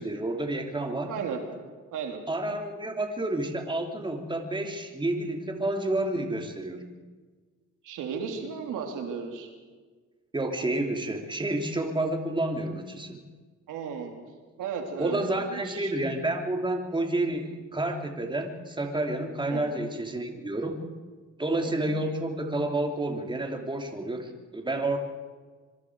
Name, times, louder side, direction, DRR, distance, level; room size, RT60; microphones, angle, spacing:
voice 1, 0.0-1.1 2.3-6.8 10.3-13.2 15.0-20.8 21.4-25.0, right 2 dB, 15° right, 4 dB, 2.8 m, -30 dB
voice 2, 1.1-1.4 1.9-2.2 7.8-9.5 13.7-14.1 14.6-15.9 19.5-19.8 21.9-22.0, right 6 dB, 90° right, 3 dB, 3.4 m, -35 dB
25.5 x 23.5 x 4.8 m, 1.4 s
cardioid pair, 90°, 30 cm